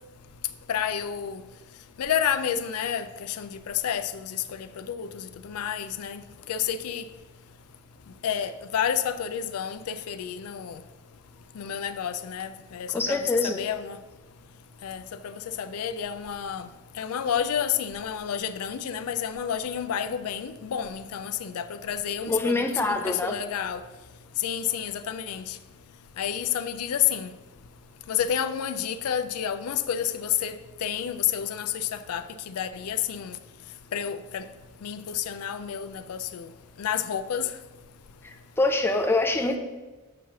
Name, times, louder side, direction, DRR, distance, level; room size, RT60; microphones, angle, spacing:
voice 1, 0.7-1.4 2.0-6.2 6.5-7.0 8.2-10.8 11.6-14.0 14.8-16.7 17.0-23.8 24.4-25.6 26.2-27.3 28.1-30.6 30.8-33.4 33.9-34.4 34.8-36.5 36.8-37.5, left 9 dB, 85° left, 0.4 m, -30 dB
voice 2, 12.9-13.6 22.3-23.3 38.2-39.6, left 2 dB, 10° left, 0.4 m, -25 dB
6.8 x 3.1 x 6.0 m
head